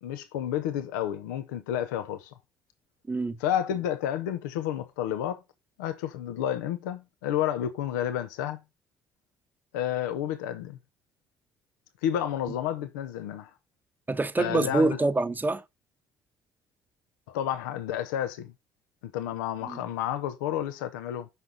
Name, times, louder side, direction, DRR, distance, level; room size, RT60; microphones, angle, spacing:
voice 1, 0.0-2.3 3.4-5.4 5.8-8.6 9.7-10.8 12.0-13.5 14.4-15.0 17.3-18.5 19.1-21.3, left 10 dB, 80° left, 0.9 m, -30 dB
voice 2, 3.1-3.4 14.1-15.6 19.6-19.8, right 2 dB, 20° right, 1.0 m, -26 dB
7.7 x 6.1 x 3.9 m
hypercardioid pair, 55°, 10 cm